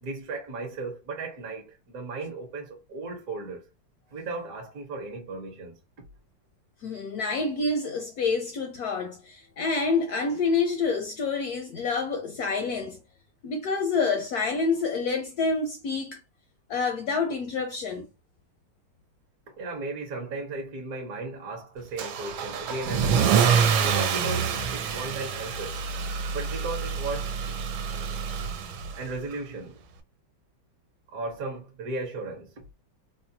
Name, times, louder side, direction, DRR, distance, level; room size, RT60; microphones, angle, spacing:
voice 1, 0.0-3.7 4.1-6.1 19.5-23.4 23.8-25.8 26.3-27.3 28.4-28.5 28.9-29.8 31.1-32.6, right 3 dB, 55° right, 1.2 m, -36 dB
voice 2, 6.8-13.0 13.4-16.2 16.7-18.1, left 4 dB, 75° left, 0.9 m, -27 dB
Car / Engine starting / Accelerating revving vroom, 22.0-29.1, right 6 dB, 80° right, 1.4 m, -26 dB
4.2 x 2.2 x 2.7 m
omnidirectional pair, 2.2 m